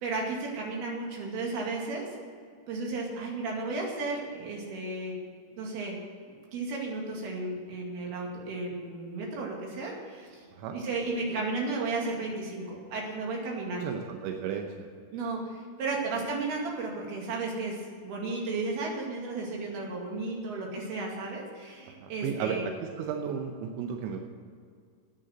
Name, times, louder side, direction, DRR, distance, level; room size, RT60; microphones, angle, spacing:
voice 1, 0.0-2.1 2.7-5.2 5.6-6.0 6.5-10.5 10.7-13.9 15.1-22.6, right 3 dB, 60° right, -1 dB, 4.0 m, -34 dB
voice 2, 13.8-14.9 16.2-16.3 22.0-22.6 23.0-24.2, right 7 dB, 85° right, 3 dB, 3.2 m, -34 dB
9.9 x 9.5 x 7.7 m, 2.1 s
omnidirectional pair, 5.2 m